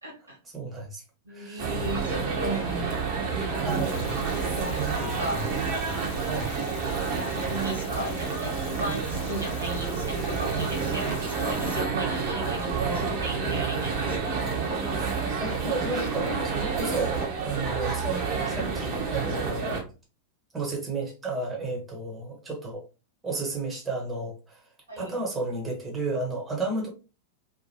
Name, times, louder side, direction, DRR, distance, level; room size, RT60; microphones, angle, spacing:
voice 1, 0.0-0.4 1.2-3.1 3.6-3.9 4.9-5.4 7.4-14.5 24.9-25.1, right 2 dB, 80° right, 1.3 m, -35 dB
voice 2, 0.5-1.0 1.3-1.7 3.6-4.2 4.7-5.2 5.5-5.6 6.1-6.5 8.8-8.9 12.9-13.0 14.9-19.8 20.5-22.8 23.2-24.6 25.0-26.9, right 3 dB, 15° right, 1.1 m, -33 dB
sound 1, 1.6-19.8, right 5 dB, 40° right, 0.9 m, -29 dB
sound 2, 3.6-11.8, left 8 dB, 45° left, 0.4 m, -45 dB
2.9 x 2.2 x 2.8 m
figure-of-eight pair, 90°, 0 cm